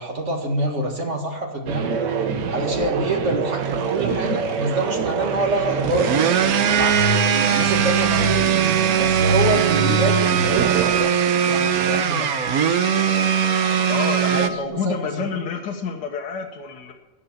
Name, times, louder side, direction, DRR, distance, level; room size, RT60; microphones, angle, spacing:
voice 1, 0.0-2.0 2.5-8.5 8.9-12.3 14.2-15.3, right 2 dB, 45° right, 2 dB, 2.2 m, -26 dB
sound 1, 1.7-11.0, right 3 dB, 85° right, 1.7 m, -26 dB
sound 2, 2.3-2.7 6.4-14.7, left 4 dB, 35° left, 0.8 m, -36 dB
sound 3, 3.6-14.5, right 9 dB, 65° right, 1.2 m, -21 dB
voice 2, 13.9-16.9, left 5 dB, 80° left, 2 dB, 1.7 m, -28 dB
12.0 x 9.9 x 7.0 m, 1.2 s
omnidirectional pair, 1.8 m